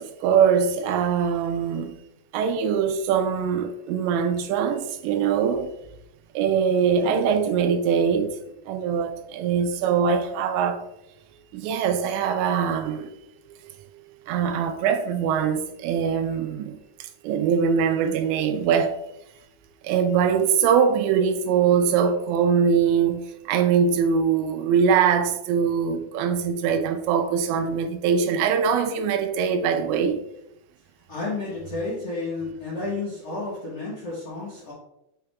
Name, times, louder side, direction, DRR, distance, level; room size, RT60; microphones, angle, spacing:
voice 1, 0.0-2.0 2.3-5.7 6.4-8.3 8.7-10.8 11.5-13.2 13.5-19.0 19.8-30.2, right 7 dB, 90° right, 2.9 m, -22 dB
voice 2, 6.8-7.3 31.1-34.7, left 3 dB, 70° left, 1.5 m, -32 dB
8.4 x 3.4 x 3.4 m
omnidirectional pair, 5.0 m